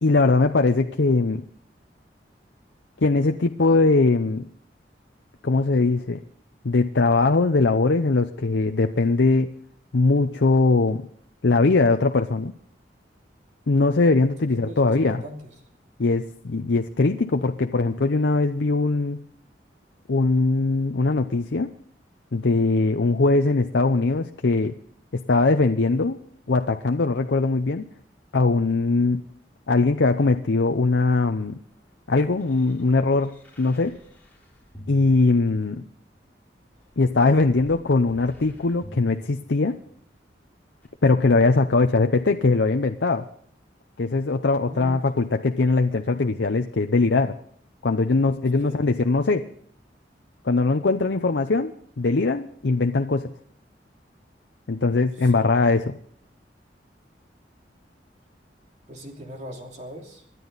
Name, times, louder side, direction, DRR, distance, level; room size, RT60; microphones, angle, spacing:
voice 1, 0.0-1.4 3.0-4.5 5.4-6.2 6.6-9.5 9.9-11.1 11.4-12.5 13.7-15.2 16.0-19.2 20.1-21.7 22.3-24.7 25.1-26.2 26.5-27.8 28.3-29.2 29.7-31.6 32.1-33.9 34.9-35.8 37.0-39.8 41.0-43.2 44.0-47.4 47.8-49.4 50.4-53.3 54.7-56.0, left 3 dB, 80° left, 6 dB, 0.7 m, -21 dB
voice 2, 14.5-15.4 44.6-45.1 48.6-48.8 58.9-60.2, equal, 40° right, 2 dB, 2.9 m, -39 dB
sound 1, 31.4-36.0 36.8-40.1 40.8-40.9, equal, 10° left, 3.9 m, -49 dB
27.0 x 11.0 x 4.1 m, 0.64 s
head